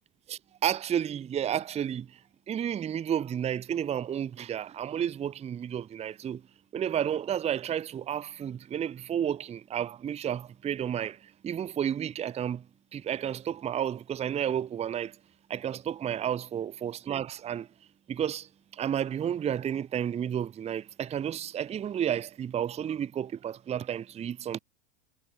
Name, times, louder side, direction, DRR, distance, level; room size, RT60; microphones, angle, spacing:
voice 1, 0.3-2.2 2.5-6.4 6.7-12.7 12.9-15.2 15.5-17.7 18.1-24.6, right 9 dB, 15° right, 0.7 m, -31 dB
supercardioid pair, 140°, 38 cm